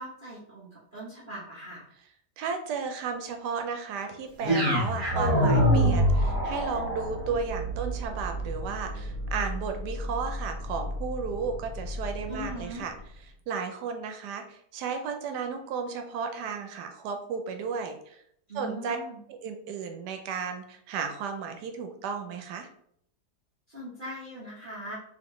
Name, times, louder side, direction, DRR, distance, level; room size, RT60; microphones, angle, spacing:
voice 1, 0.0-1.9 12.3-12.8 18.5-19.2 23.7-24.9, equal, 35° right, -9 dB, 1.1 m, -40 dB
voice 2, 2.4-12.9 13.5-18.2 18.5-19.0 19.3-22.7, right 5 dB, 90° right, 5 dB, 1.2 m, -34 dB
sound 1, 4.4-12.6, equal, 55° right, 1.6 m, -27 dB
4.1 x 3.1 x 3.0 m, 0.68 s
omnidirectional pair, 1.7 m